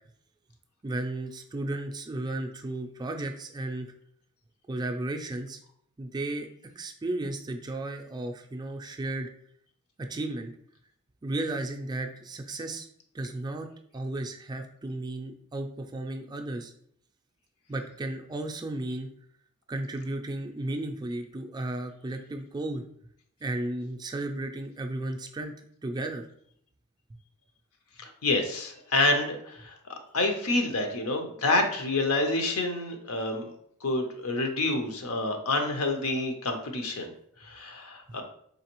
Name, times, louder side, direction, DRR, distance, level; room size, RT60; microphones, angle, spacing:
voice 1, 0.8-3.9 4.7-5.6 6.0-6.5 6.8-9.3 10.0-10.5 11.2-12.9 13.1-13.7 13.9-16.7 17.7-19.1 19.7-22.8 23.4-25.5 25.8-26.3, right 2 dB, 20° right, 4 dB, 0.3 m, -34 dB
voice 2, 28.0-29.7 30.1-33.5 33.8-37.1 37.4-38.2, left 2 dB, 75° left, 5 dB, 0.7 m, -28 dB
4.0 x 3.2 x 3.0 m, 0.67 s
head